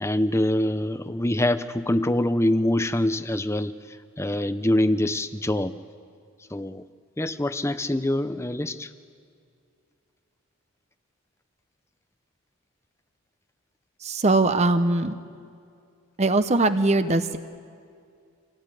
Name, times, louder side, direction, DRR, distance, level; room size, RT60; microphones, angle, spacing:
voice 1, 0.0-3.7 4.2-5.7 6.5-6.8 7.2-8.9, left 1 dB, 15° left, 12 dB, 0.7 m, -24 dB
voice 2, 14.0-15.1 16.2-17.4, right 2 dB, 30° right, 9 dB, 0.8 m, -21 dB
27.0 x 18.0 x 9.1 m, 2.3 s
head